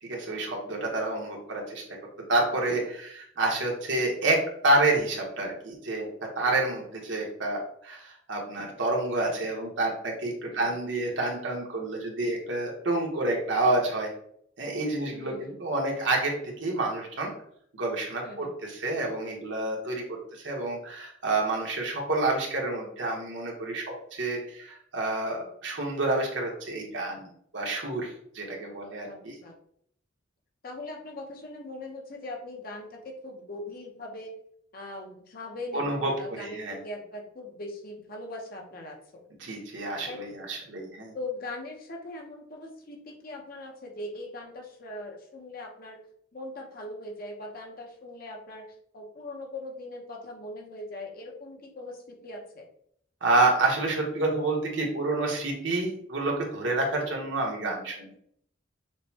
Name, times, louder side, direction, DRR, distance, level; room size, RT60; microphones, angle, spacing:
voice 1, 0.0-1.8 2.3-6.1 6.4-14.1 14.6-17.3 17.7-27.3 27.5-29.3 35.7-36.8 39.4-41.1 53.2-58.1, right 2 dB, 80° right, -1 dB, 1.2 m, -28 dB
voice 2, 15.0-15.6 18.2-18.5 29.1-29.5 30.6-34.3 34.7-39.2 40.1-40.2 41.1-46.0 46.3-48.7 48.9-52.7, left 1 dB, 50° left, 0 dB, 0.9 m, -40 dB
6.4 x 2.2 x 2.8 m, 0.67 s
head